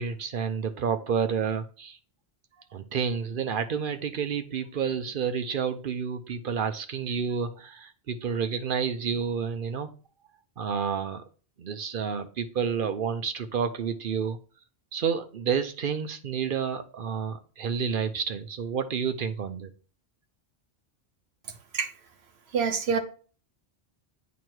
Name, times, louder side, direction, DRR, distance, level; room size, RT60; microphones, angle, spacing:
voice 1, 0.0-2.0 2.7-9.9 10.6-11.2 11.6-14.4 14.9-19.7, right 6 dB, 60° right, 9 dB, 0.8 m, -30 dB
voice 2, 22.5-23.0, right 6 dB, 85° right, 6 dB, 1.1 m, -25 dB
9.1 x 3.1 x 4.5 m, 0.39 s
omnidirectional pair, 1.0 m